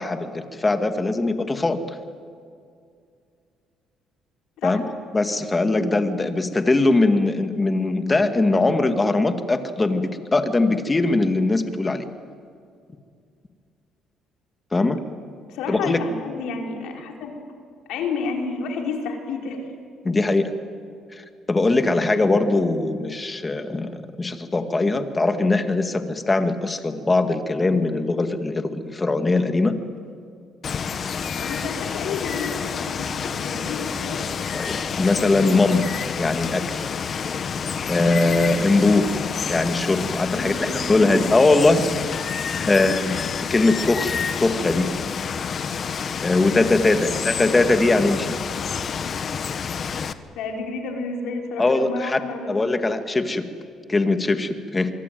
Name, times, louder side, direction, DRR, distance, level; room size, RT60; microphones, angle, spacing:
voice 1, 0.0-2.0 4.6-4.8 5.1-12.1 14.7-15.0 15.7-16.0 20.0-20.5 21.1-21.2 21.5-29.7 30.9-31.0 34.5-34.7 35.0-35.9 36.2-36.9 37.9-39.0 39.5-41.9 42.7-43.1 43.5-44.9 46.2-48.3 51.6-52.2 52.5-53.4 53.9-54.9, left 2 dB, 20° left, 7 dB, 2.1 m, -21 dB
voice 2, 15.5-17.3 17.9-19.7 31.4-34.2 40.3-41.2 42.2-43.0 43.5-43.7 46.9-47.2 50.3-52.6, left 4 dB, 80° left, 2 dB, 4.6 m, -31 dB
Water, 30.6-50.1, left 6 dB, 45° left, 1.2 m, -28 dB
25.0 x 23.5 x 9.4 m, 2.3 s
cardioid pair, 110°, 0 cm